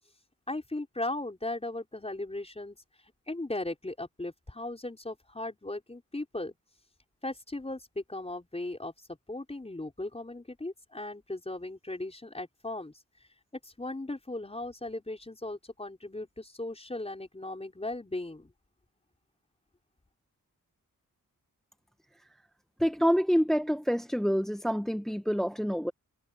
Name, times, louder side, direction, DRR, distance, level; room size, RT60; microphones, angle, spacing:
voice 1, 0.5-2.8 3.3-6.5 7.2-8.9 9.3-12.9 13.6-18.5, left 2 dB, 20° left, 5.0 m, -37 dB
voice 2, 22.8-25.9, equal, ahead, 0.8 m, -27 dB
wide cardioid pair, 95°, 33 cm